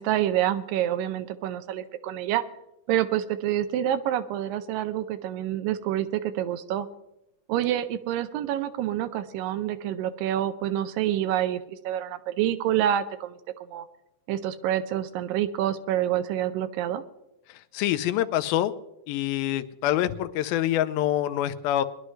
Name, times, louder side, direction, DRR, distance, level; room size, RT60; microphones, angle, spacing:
voice 1, 0.0-2.4 2.9-6.9 7.5-13.4 13.7-13.9 14.3-17.0, right 11 dB, 80° right, 11 dB, 2.2 m, -27 dB
voice 2, 17.7-18.7 19.1-21.8, left 12 dB, 90° left, 11 dB, 2.5 m, -25 dB
22.0 x 11.0 x 3.2 m, 0.89 s
omnidirectional pair, 4.1 m